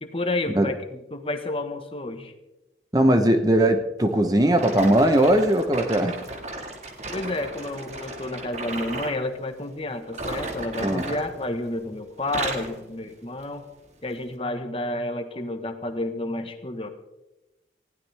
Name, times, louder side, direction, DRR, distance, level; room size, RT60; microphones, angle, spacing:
voice 1, 0.0-2.3 7.1-13.7 14.0-16.9, left 2 dB, 30° left, 7 dB, 1.3 m, -30 dB
voice 2, 2.9-6.2 10.8-11.0, right 1 dB, 20° right, 7 dB, 1.0 m, -19 dB
sound 1, 4.6-9.2 10.0-11.8 12.1-12.8 13.4-13.6 14.2-14.3, right 2 dB, 40° right, 1.9 m, -35 dB
20.0 x 16.0 x 3.5 m, 1.0 s
head